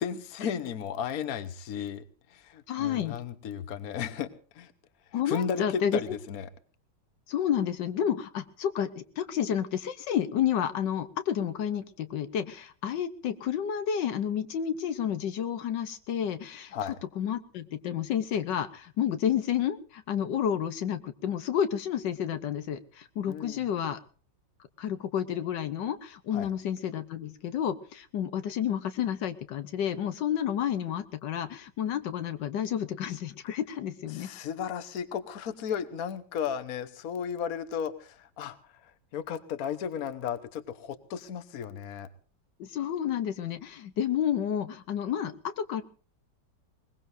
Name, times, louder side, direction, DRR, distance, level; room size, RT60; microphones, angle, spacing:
voice 1, 0.0-2.0 2.3-4.3 4.5-4.7 5.3-6.5 16.7-17.0 23.3-23.6 26.3-26.5 34.1-38.6 38.8-42.1, left 8 dB, 55° left, 11 dB, 1.4 m, -34 dB
voice 2, 2.7-3.2 5.1-6.0 7.3-16.7 17.2-24.0 24.8-34.3 42.6-45.8, left 9 dB, 80° left, 10 dB, 1.5 m, -30 dB
21.5 x 20.5 x 2.6 m, 0.40 s
omnidirectional pair, 1.9 m